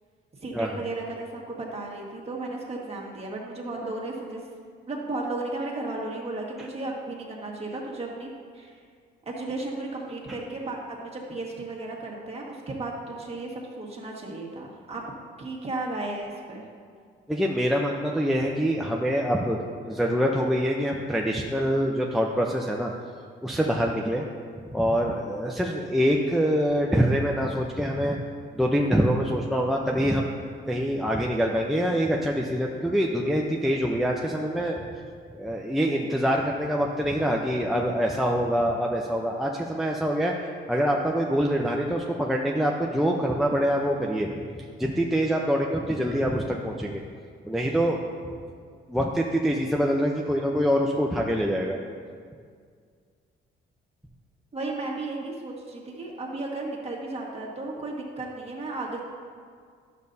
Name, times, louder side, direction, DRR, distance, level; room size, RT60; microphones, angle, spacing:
voice 1, 0.4-4.4 4.9-8.8 9.2-15.0 15.4-16.7 54.5-59.0, right 2 dB, 30° right, -2 dB, 1.6 m, -34 dB
voice 2, 17.3-22.9 23.4-24.3 24.7-28.2 28.5-30.3 30.7-34.9 35.3-40.3 40.7-44.3 44.6-47.0 47.4-48.1 48.9-51.8, equal, ahead, -1 dB, 0.5 m, -25 dB
10.5 x 6.8 x 2.6 m, 2.1 s
cardioid pair, 90°, 20 cm